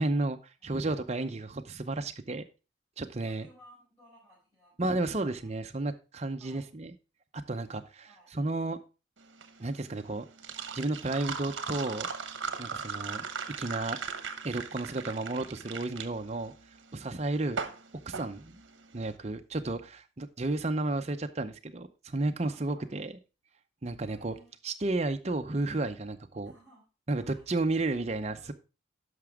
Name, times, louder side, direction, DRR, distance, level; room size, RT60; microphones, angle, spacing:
voice 1, 0.0-2.4 3.0-3.5 4.8-6.9 7.5-8.8 9.6-10.2 10.7-12.1 12.6-13.3 13.6-14.0 14.4-16.5 16.9-17.6 18.1-18.6 18.9-23.1 23.8-24.3 24.6-26.5 27.1-28.5, right 2 dB, 35° right, 7 dB, 0.6 m, -32 dB
voice 2, 0.6-1.1 3.2-4.8 5.0-5.5 6.4-6.7 8.0-8.3 22.4-22.9 24.0-24.5 26.4-26.9 27.2-27.6 28.4-28.5, equal, 10° left, -10 dB, 4.8 m, -59 dB
sound 1, 9.2-19.1, right 5 dB, 70° right, 1.0 m, -38 dB
11.0 x 6.0 x 3.5 m, 0.31 s
head